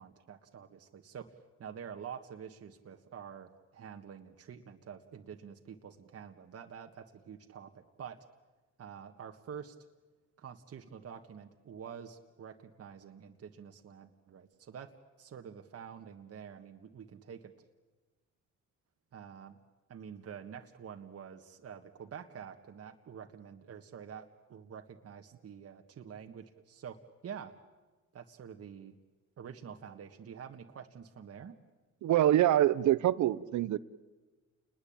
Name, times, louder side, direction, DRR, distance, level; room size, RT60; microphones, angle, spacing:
voice 1, 0.0-8.2 8.8-9.8 10.4-14.9 15.2-17.5 19.1-19.6 19.9-27.5 28.1-29.0 29.4-31.6, right 7 dB, 55° right, 1.6 m, -47 dB
voice 2, 32.0-33.8, right 12 dB, 70° right, 0.9 m, -25 dB
29.0 x 21.0 x 8.7 m
cardioid pair, 90°, 30 cm